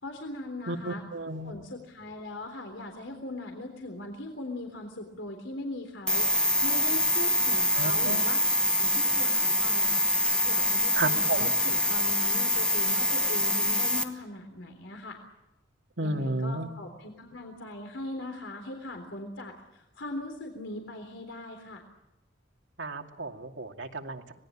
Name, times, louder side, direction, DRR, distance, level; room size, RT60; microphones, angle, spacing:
voice 1, 0.0-1.0 1.4-6.3 6.6-8.4 8.7-15.2 16.0-21.8, left 1 dB, 85° left, 4 dB, 3.6 m, -40 dB
voice 2, 0.7-1.5 7.8-8.2 10.9-11.5 16.0-16.7 22.8-24.3, right 2 dB, 80° right, 3 dB, 2.5 m, -32 dB
sound 1, 6.1-14.0, left 1 dB, 5° left, 1.7 m, -25 dB
26.0 x 20.0 x 8.8 m, 0.93 s
head